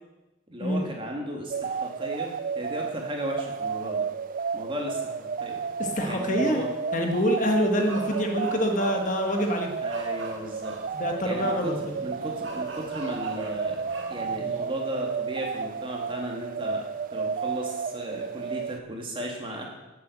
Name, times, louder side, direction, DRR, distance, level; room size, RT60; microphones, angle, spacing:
voice 1, 0.5-4.1 4.5-5.6 6.1-6.7 9.8-10.8 11.2-11.7 12.0-16.9 17.1-19.7, right 1 dB, 25° right, 0 dB, 2.5 m, -35 dB
sound 1, 1.5-18.8, right 5 dB, 40° right, 0.3 m, -32 dB
voice 2, 5.8-6.6 6.9-9.7 10.9-11.9, equal, 40° left, 3 dB, 1.5 m, -26 dB
sound 2, 7.7-14.7, right 3 dB, 65° right, 2.2 m, -42 dB
12.5 x 8.0 x 8.0 m, 1.1 s
head